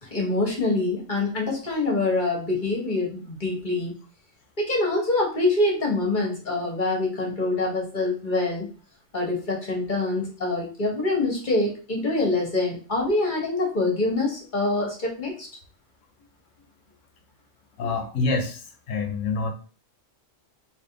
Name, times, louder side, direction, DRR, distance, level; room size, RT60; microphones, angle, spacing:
voice 1, 0.0-4.0 4.6-8.7 9.1-15.5, left 2 dB, 40° left, -1 dB, 1.3 m, -25 dB
voice 2, 17.8-19.5, left 3 dB, 85° left, 5 dB, 1.1 m, -27 dB
3.4 x 2.9 x 3.9 m, 0.38 s
omnidirectional pair, 1.3 m